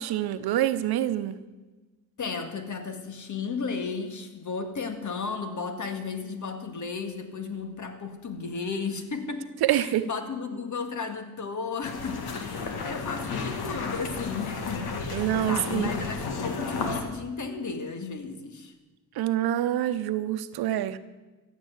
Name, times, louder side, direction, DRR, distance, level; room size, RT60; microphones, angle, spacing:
voice 1, 0.0-1.4 9.6-10.1 15.1-15.9 19.1-21.0, right 12 dB, 90° right, 12 dB, 0.9 m, -26 dB
voice 2, 2.2-18.7, left 5 dB, 55° left, 7 dB, 1.9 m, -34 dB
sound 1, 11.8-17.0, left 4 dB, 85° left, 2.0 m, -33 dB
14.5 x 8.4 x 8.2 m, 1.2 s
cardioid pair, 80°, 36 cm